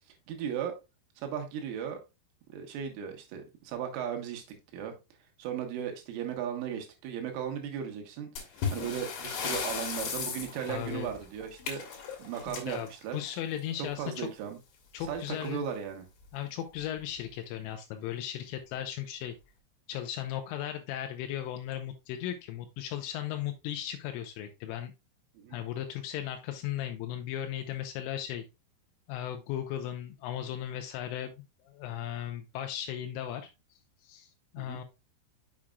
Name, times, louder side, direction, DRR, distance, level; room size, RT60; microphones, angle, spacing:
voice 1, 0.3-0.8 1.2-2.0 2.5-4.4 4.7-5.0 5.4-8.3 8.7-11.8 12.2-13.2 13.8-14.6 15.1-16.1 25.4-25.6 34.6-34.8, right 8 dB, 80° right, 4 dB, 3.7 m, -36 dB
sound 1, 8.4-13.7 15.0-15.2 15.5-15.6 16.2-16.3 17.0-17.3, left 6 dB, 65° left, 3.2 m, -37 dB
voice 2, 10.7-11.1 12.5-14.3 14.9-15.6 16.3-19.3 19.9-24.9 25.5-28.4 29.1-34.8, left 11 dB, 85° left, 6 dB, 3.1 m, -37 dB
7.2 x 6.3 x 2.3 m, 0.26 s
omnidirectional pair, 5.8 m